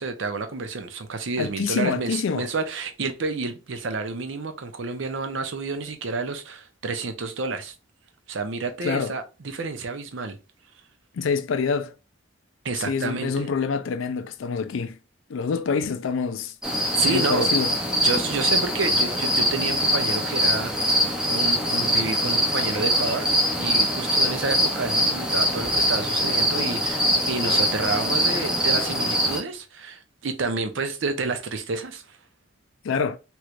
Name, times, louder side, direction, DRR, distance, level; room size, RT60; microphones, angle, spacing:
voice 1, 0.0-7.7 8.3-10.4 12.6-13.5 16.9-17.5 18.0-20.9 21.3-23.3 23.5-32.0, right 4 dB, 70° right, 0.6 m, -29 dB
voice 2, 1.4-2.5 8.8-9.1 11.1-11.9 12.8-15.0 15.3-16.5 17.1-17.7 32.8-33.2, left 5 dB, 75° left, 0.4 m, -26 dB
sound 1, 16.6-29.4, equal, 5° right, 0.6 m, -23 dB
3.2 x 3.0 x 2.4 m
head